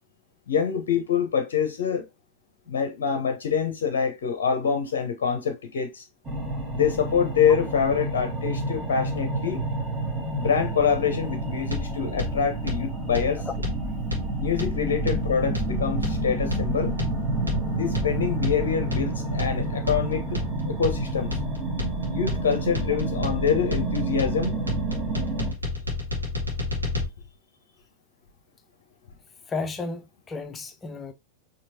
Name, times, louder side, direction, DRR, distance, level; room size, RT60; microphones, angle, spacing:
voice 1, 0.5-2.1 2.7-6.0 6.7-9.6 10.4-13.4 14.4-17.0 17.7-21.4 22.1-24.6, left 7 dB, 60° left, 0.6 m, -25 dB
sound 1, 6.2-25.5, right 2 dB, 20° right, 1.2 m, -29 dB
sound 2, 11.7-27.1, left 3 dB, 80° right, 1.2 m, -31 dB
voice 2, 29.5-31.1, left 4 dB, 20° left, 0.6 m, -33 dB
4.5 x 2.7 x 2.6 m
figure-of-eight pair, 90°, 0 cm